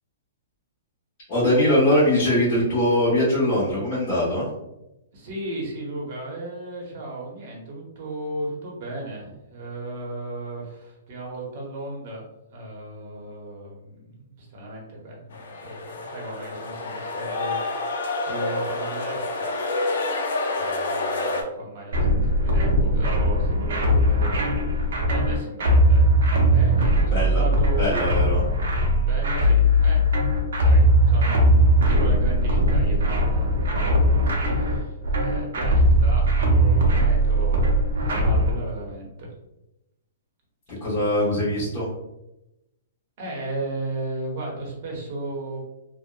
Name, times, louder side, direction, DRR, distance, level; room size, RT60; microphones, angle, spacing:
voice 1, 1.3-4.4 27.1-27.4 27.8-28.4 40.8-41.9, left 1 dB, 35° left, -12 dB, 1.0 m, -21 dB
voice 2, 5.1-19.5 20.5-27.9 29.1-30.1 30.5-39.3 43.2-45.6, right 2 dB, 45° right, -2 dB, 0.8 m, -35 dB
sound 1, 15.3-21.4, left 2 dB, 70° left, 0.5 m, -28 dB
sound 2, 21.9-38.5, equal, 75° right, 0.6 m, -19 dB
2.7 x 2.1 x 2.2 m, 0.92 s
hypercardioid pair, 160°, 0 cm